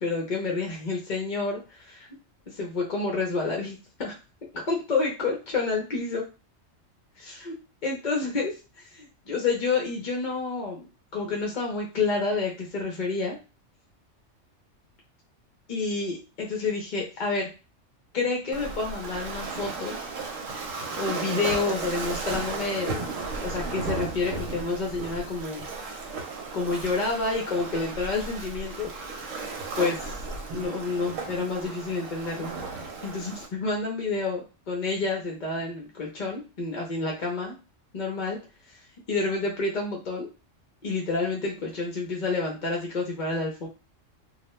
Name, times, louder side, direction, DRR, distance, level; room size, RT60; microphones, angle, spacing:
voice 1, 0.0-2.1 2.5-4.1 4.5-6.2 7.2-7.6 7.8-8.5 9.0-10.8 11.1-13.4 15.7-17.5 18.1-20.0 21.0-25.6 26.5-28.9 29.8-30.1 30.5-32.5 33.0-37.5 37.9-38.4 39.1-40.3 40.8-43.7, left 3 dB, 45° left, -1 dB, 0.6 m, -29 dB
Waves surf, 18.5-33.5, right 3 dB, 80° right, 1.0 m, -35 dB
2.3 x 2.2 x 3.0 m, 0.31 s
omnidirectional pair, 1.3 m